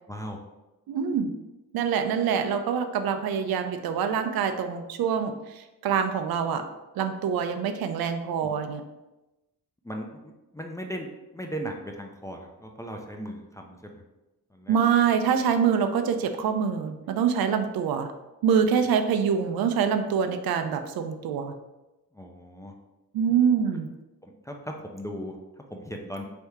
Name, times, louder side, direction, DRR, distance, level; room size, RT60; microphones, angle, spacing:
voice 1, 0.1-0.4 8.4-8.6 9.8-11.1 11.3-14.0 14.5-14.8 18.8-18.9 22.1-22.7 24.2-26.2, equal, 10° left, 1 dB, 0.3 m, -38 dB
voice 2, 0.9-1.3 1.7-6.6 7.0-8.8 14.7-18.1 18.4-21.6 23.1-23.9, right 7 dB, 80° right, 8 dB, 0.5 m, -25 dB
3.4 x 2.7 x 4.6 m, 1.0 s
cardioid pair, 125°, 36 cm